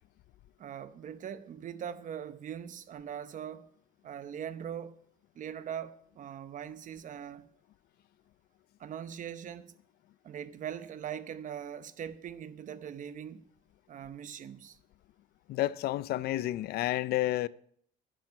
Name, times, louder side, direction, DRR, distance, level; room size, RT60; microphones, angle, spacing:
voice 1, 0.6-3.7 4.0-4.9 5.3-7.5 8.8-9.7 10.2-13.4 13.9-14.8, right 9 dB, 50° right, 0.9 m, -41 dB
voice 2, 15.5-17.5, left 15 dB, 70° left, 0.5 m, -30 dB
10.5 x 10.5 x 5.5 m
cardioid pair, 110°, 17 cm